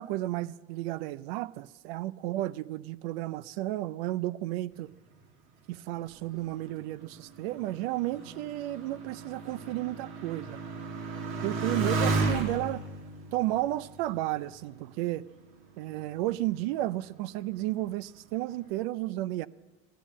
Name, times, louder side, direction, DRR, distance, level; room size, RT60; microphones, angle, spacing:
voice 1, 0.0-4.9 5.7-10.6 11.4-12.8 13.3-15.3 15.8-19.5, right 16 dB, 80° right, 0.5 m, -33 dB
Motorcycle, 6.1-15.1 15.9-16.4, right 3 dB, 45° right, 1.4 m, -34 dB
14.5 x 10.0 x 7.3 m
cardioid pair, 175°, 29 cm